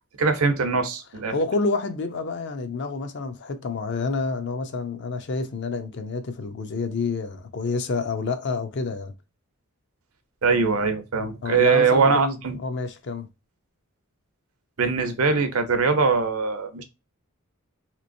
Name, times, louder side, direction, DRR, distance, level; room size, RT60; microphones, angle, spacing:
voice 1, 0.2-1.3 10.4-12.6 14.8-16.8, right 5 dB, 75° right, 0.7 m, -22 dB
voice 2, 1.3-9.1 11.4-13.3, left 3 dB, 55° left, 0.5 m, -28 dB
3.3 x 2.9 x 2.5 m
head